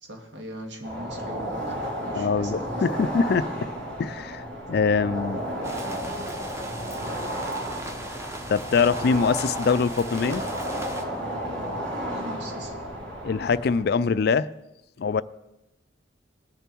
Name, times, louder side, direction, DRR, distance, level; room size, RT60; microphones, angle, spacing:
voice 1, 0.0-2.9 12.0-12.8, equal, 70° right, 3 dB, 1.9 m, -41 dB
sound 1, 0.8-13.8, equal, 85° right, 4.2 m, -33 dB
voice 2, 2.2-3.7 4.0-4.4 4.7-5.4 8.5-10.4 13.2-14.5 15.0-15.2, left 5 dB, 55° left, 17 dB, 0.4 m, -23 dB
sound 2, 5.6-11.0, right 1 dB, 15° right, 1.0 m, -39 dB
20.0 x 6.8 x 4.5 m, 0.99 s
head